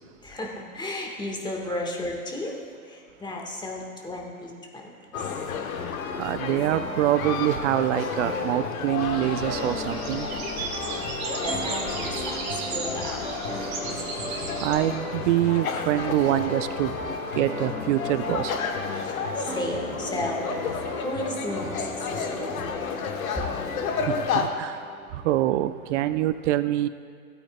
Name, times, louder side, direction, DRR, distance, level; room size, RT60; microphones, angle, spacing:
voice 1, 0.2-2.6 2.8-5.3 11.4-13.2 19.0-22.9, left 1 dB, 10° left, 0 dB, 1.4 m, -34 dB
sound 1, 5.1-24.5, left 6 dB, 75° left, 1.1 m, -32 dB
voice 2, 6.2-10.3 14.6-16.9 17.4-18.5 24.1-24.8 25.1-26.9, right 14 dB, 55° right, 13 dB, 0.6 m, -25 dB
sound 2, 6.4-25.4, right 1 dB, 15° right, 2.3 m, -37 dB
sound 3, 9.0-14.7, right 3 dB, 75° right, 2.4 m, -35 dB
16.0 x 8.7 x 2.2 m, 2.3 s
hypercardioid pair, 115°, 42 cm